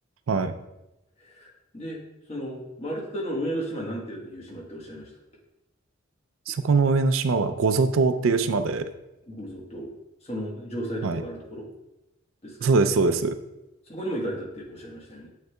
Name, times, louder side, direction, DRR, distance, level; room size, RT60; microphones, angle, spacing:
voice 1, 1.2-2.0 2.3-5.1 9.3-9.9 10.2-11.7 12.4-12.6 13.9-15.3, equal, 30° left, -2 dB, 1.3 m, -34 dB
voice 2, 6.5-8.8 11.0-11.2 12.6-13.3, right 4 dB, 85° right, 9 dB, 0.4 m, -22 dB
7.2 x 6.5 x 2.3 m, 0.93 s
head